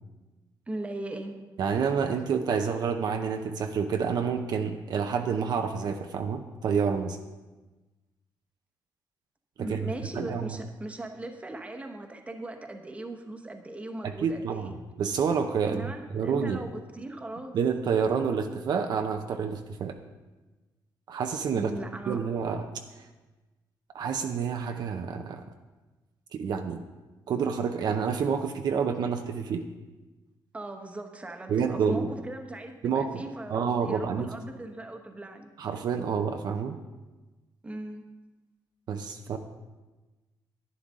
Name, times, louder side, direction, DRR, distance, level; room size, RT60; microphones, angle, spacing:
voice 1, 0.7-1.3 9.6-14.7 15.7-17.6 21.5-22.2 30.5-35.5 37.6-38.0, right 1 dB, 15° right, 5 dB, 1.0 m, -39 dB
voice 2, 1.6-7.2 9.6-9.8 10.1-10.5 14.0-16.6 17.5-20.0 21.1-21.7 22.1-22.6 23.9-25.4 26.3-26.8 27.3-29.6 31.5-32.1 32.8-33.2 33.5-34.3 35.6-36.8 38.9-39.4, right 6 dB, 60° right, 5 dB, 0.7 m, -28 dB
11.0 x 9.5 x 3.7 m, 1.2 s
cardioid pair, 115°, 8 cm